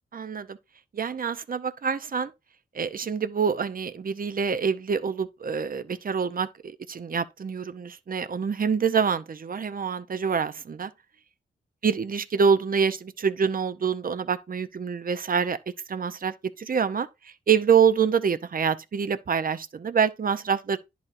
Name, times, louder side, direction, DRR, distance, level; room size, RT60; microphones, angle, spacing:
voice 1, 0.1-0.6 0.9-2.3 2.7-6.5 6.9-10.9 11.8-15.6 15.9-20.8, right 6 dB, 45° right, 0.6 m, -26 dB
10.5 x 4.2 x 2.5 m
cardioid pair, 45°, 20 cm